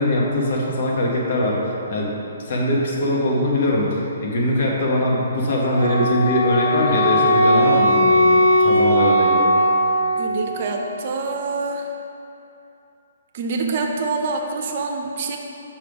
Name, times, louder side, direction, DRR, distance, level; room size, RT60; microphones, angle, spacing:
voice 1, 0.0-2.1 2.5-9.5, left 1 dB, 55° left, -3 dB, 1.4 m, -22 dB
Wind instrument woodwind instrument, 5.7-10.5, equal, 75° left, 1.5 m, -18 dB
voice 2, 10.2-11.9 13.3-15.4, right 3 dB, 50° right, 2 dB, 0.7 m, -26 dB
5.5 x 5.2 x 4.9 m, 2.8 s
figure-of-eight pair, 135°, 0 cm